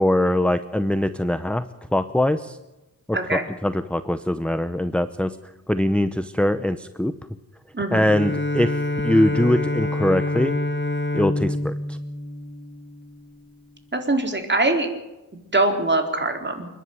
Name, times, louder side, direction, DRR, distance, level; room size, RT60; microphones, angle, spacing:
voice 1, 0.0-1.6 1.9-2.6 3.1-5.4 5.7-7.1 7.9-8.7 9.0-10.6 11.1-12.0, left 1 dB, 5° left, 10 dB, 0.8 m, -22 dB
voice 2, 3.1-3.4 7.7-8.0 13.9-14.9 15.5-16.7, right 2 dB, 30° right, 4 dB, 4.1 m, -22 dB
Bowed string instrument, 8.0-13.3, left 2 dB, 30° left, 1.8 m, -26 dB
29.0 x 11.0 x 9.7 m, 1.0 s
wide cardioid pair, 100°, 35 cm